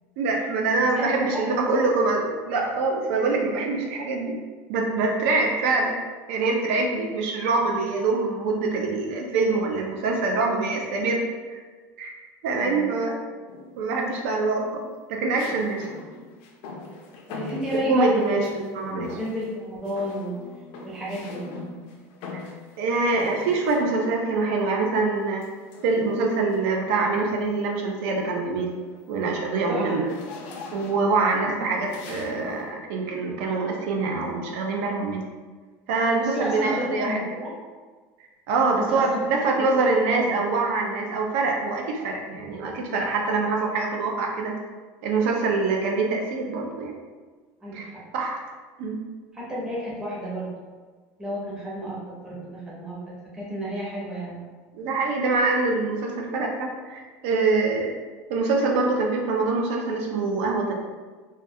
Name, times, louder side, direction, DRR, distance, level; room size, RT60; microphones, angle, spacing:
voice 1, 0.2-4.4 4.7-6.0 6.3-11.2 11.5-11.6 12.0-12.1 12.4-13.2 13.8-15.9 17.9-19.2 22.3-22.4 22.8-25.5 25.8-28.7 29.1-30.1 30.7-35.2 35.9-37.2 38.5-44.5 45.0-46.9 47.7-48.4 48.8-49.0 54.7-57.9 58.3-60.7, right 3 dB, 70° right, 1 dB, 0.3 m, -24 dB
voice 2, 0.9-1.8 12.6-12.9 17.3-18.5 18.9-20.3 20.8-21.4 29.6-29.8 30.9-31.2 36.1-37.5 38.8-39.7 40.1-40.3 42.0-42.1 47.6-47.9 49.3-50.5 51.2-54.4, equal, 10° right, -7 dB, 0.6 m, -32 dB
sound 1, 13.5-14.0 15.3-18.7 19.0-19.6 19.8-24.3 25.4-26.8 27.3-27.6 27.9-32.7, left 3 dB, 60° left, 0.4 m, -42 dB
2.2 x 2.2 x 2.6 m, 1.4 s
cardioid pair, 175°, 7 cm